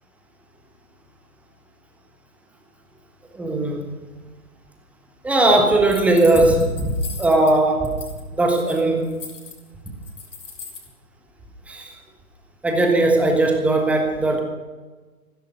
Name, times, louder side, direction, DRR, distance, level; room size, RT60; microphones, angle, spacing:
voice 1, 3.3-3.9 5.2-6.9 7.2-7.9 8.3-9.2 11.7-11.9 12.6-14.4, right 2 dB, 5° right, 3 dB, 1.3 m, -18 dB
sound 1, 5.9-7.5 7.8-8.2 8.5-10.9, left 5 dB, 55° left, 3.3 m, -38 dB
15.0 x 13.5 x 5.2 m, 1.3 s
figure-of-eight pair, 125°, 44 cm